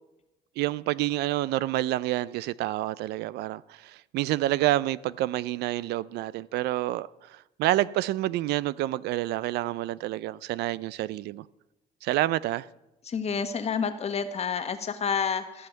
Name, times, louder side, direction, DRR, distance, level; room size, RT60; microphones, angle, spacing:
voice 1, 0.6-11.4 12.0-12.7, right 15 dB, 75° right, 0.4 m, -28 dB
voice 2, 13.1-15.7, left 6 dB, 40° left, 1.3 m, -29 dB
14.5 x 5.6 x 9.1 m
cardioid pair, 110°, 17 cm